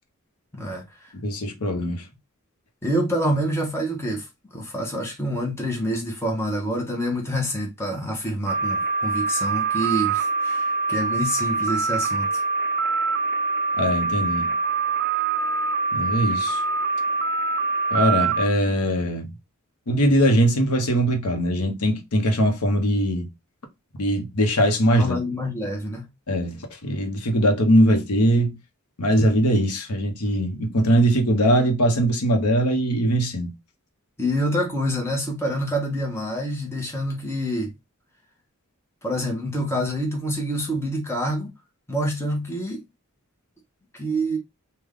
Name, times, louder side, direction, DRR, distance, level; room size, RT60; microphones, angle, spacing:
voice 1, 0.5-1.1 2.8-4.3 4.5-12.4 24.9-26.0 34.2-37.7 39.0-41.5 41.9-42.8 43.9-44.4, equal, 10° left, 0.9 m, -27 dB
voice 2, 1.1-2.1 13.8-14.5 15.9-16.6 17.9-19.3 19.9-23.3 24.0-25.2 26.3-28.6 29.0-33.5, equal, 90° left, 0.9 m, -21 dB
sound 1, 8.5-18.5, right 4 dB, 50° right, 0.3 m, -24 dB
3.5 x 2.2 x 3.5 m
head